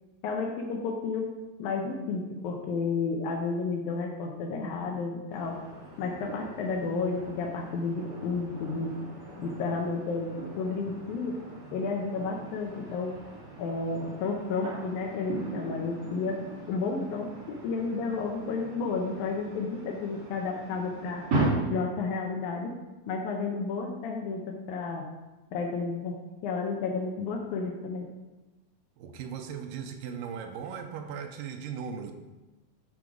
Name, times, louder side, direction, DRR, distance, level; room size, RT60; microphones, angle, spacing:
voice 1, 0.2-1.2 1.6-5.5 6.0-8.9 9.4-11.4 11.7-13.1 13.6-16.4 16.7-21.2 21.7-22.7 23.1-25.0 25.5-26.1 26.4-28.1, left 4 dB, 80° left, 1 dB, 1.8 m, -31 dB
sound 1, 5.3-21.5, right 3 dB, 45° right, 3.8 m, -39 dB
voice 2, 29.0-32.1, right 7 dB, 85° right, 4 dB, 2.0 m, -38 dB
11.5 x 3.9 x 4.8 m, 1.1 s
omnidirectional pair, 4.4 m